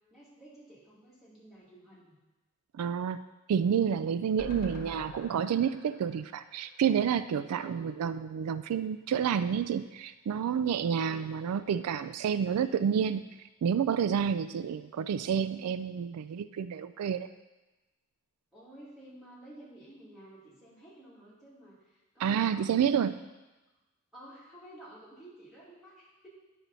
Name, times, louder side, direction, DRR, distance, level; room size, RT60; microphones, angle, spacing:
voice 1, 0.0-2.2 7.5-7.9 10.9-11.3 18.5-23.3 24.1-26.3, right 1 dB, ahead, -10 dB, 2.5 m, -52 dB
voice 2, 2.7-3.2 3.5-13.2 13.6-17.3 22.2-23.1, right 7 dB, 90° right, 13 dB, 0.3 m, -29 dB
sound 1, 4.4-7.6 8.0-8.1 8.3-8.4, left 1 dB, 40° left, 1.2 m, -47 dB
9.5 x 5.8 x 4.0 m, 1.1 s
head